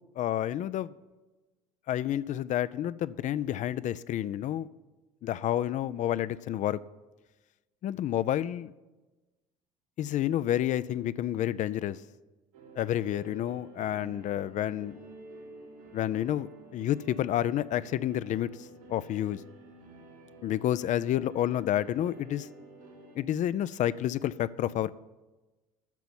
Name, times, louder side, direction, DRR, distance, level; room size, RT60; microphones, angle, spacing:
voice 1, 0.2-0.9 1.9-4.7 5.2-6.8 7.8-8.7 10.0-12.0 12.8-15.0 15.9-19.4 20.4-22.5 23.2-24.9, left 12 dB, 45° left, 0.5 m, -29 dB
sound 1, 12.5-23.2, right 2 dB, 90° right, 3.7 m, -50 dB
10.5 x 6.9 x 8.8 m
hypercardioid pair, 65°, 18 cm